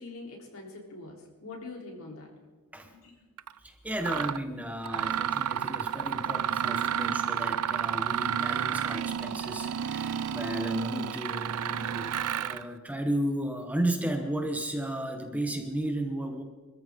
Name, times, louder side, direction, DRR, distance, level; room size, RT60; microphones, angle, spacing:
voice 1, 0.0-2.4 2.9-3.3, left 3 dB, 70° left, 0 dB, 3.6 m, -44 dB
Mechanisms, 3.4-3.5 4.0-4.4 4.8-12.7, right 9 dB, 90° right, 0.5 m, -31 dB
voice 2, 3.6-16.4, right 1 dB, 5° right, 4 dB, 1.0 m, -34 dB
24.5 x 14.0 x 3.7 m, 1.3 s
head